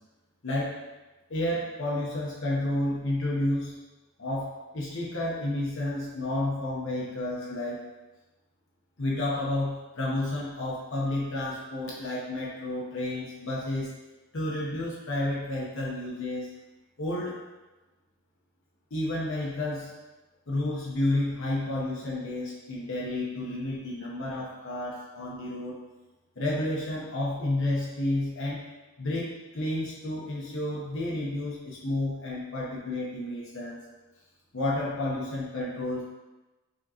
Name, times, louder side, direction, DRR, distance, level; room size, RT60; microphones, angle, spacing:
voice 1, 0.4-0.8 1.3-3.8 4.2-7.8 9.0-13.9 14.3-16.5 17.0-17.4 18.9-19.9 20.5-25.8 26.4-28.6 29.0-33.8 34.5-36.0, left 1 dB, 60° left, -6 dB, 0.9 m, -31 dB
5.1 x 3.5 x 2.9 m, 1.1 s
head